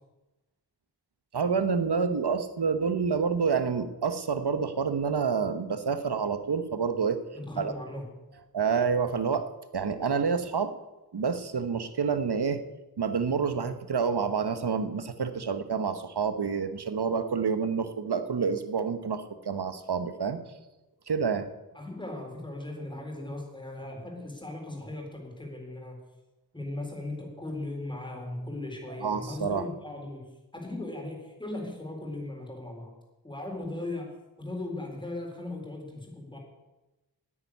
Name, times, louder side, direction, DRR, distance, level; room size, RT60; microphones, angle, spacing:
voice 1, 1.3-7.2 7.6-7.7 8.5-10.7 11.1-12.6 13.0-20.4 21.1-21.5 29.0-29.6, right 5 dB, 75° right, 10 dB, 1.2 m, -28 dB
voice 2, 7.3-8.1 21.7-26.0 26.5-32.9 33.2-36.4, left 2 dB, 10° left, 1 dB, 4.0 m, -38 dB
9.8 x 9.4 x 9.8 m, 1.1 s
wide cardioid pair, 80°, 39 cm